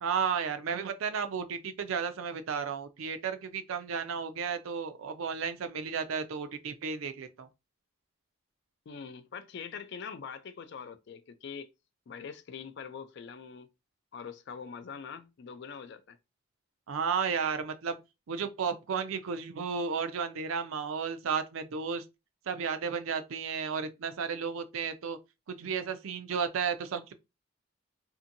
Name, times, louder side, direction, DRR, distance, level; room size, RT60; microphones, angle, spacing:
voice 1, 0.0-7.5 16.9-18.0 18.3-22.0 22.5-25.2 25.5-27.1, right 6 dB, 75° right, 0.4 m, -33 dB
voice 2, 8.9-11.7 12.1-13.7 14.1-16.2, left 6 dB, 55° left, 0.3 m, -43 dB
2.7 x 2.5 x 2.5 m
head